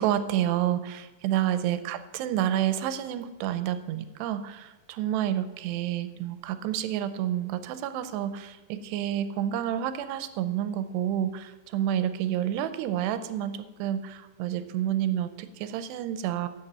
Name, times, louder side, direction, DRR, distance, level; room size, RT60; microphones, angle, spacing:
voice 1, 0.0-16.5, right 11 dB, 90° right, 12 dB, 2.8 m, -29 dB
11.0 x 7.7 x 8.1 m, 1.1 s
omnidirectional pair, 4.9 m